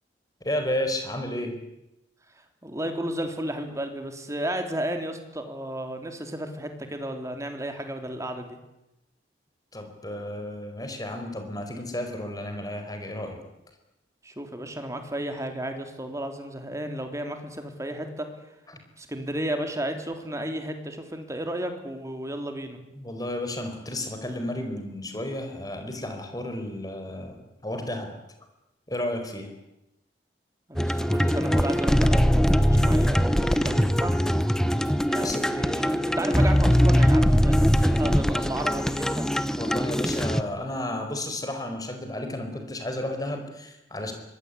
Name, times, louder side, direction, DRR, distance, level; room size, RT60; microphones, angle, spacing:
voice 1, 0.4-1.6 9.7-13.4 22.9-28.1 28.9-29.5 35.2-35.4 39.5-44.1, left 1 dB, 20° left, 5 dB, 4.9 m, -32 dB
voice 2, 2.6-8.6 14.2-18.3 19.0-22.8 30.7-34.1 35.1-39.3, right 1 dB, 15° right, 5 dB, 3.6 m, -33 dB
sound 1, 30.8-40.4, equal, 5° left, 1.1 m, -22 dB
24.5 x 20.5 x 9.9 m, 0.91 s
head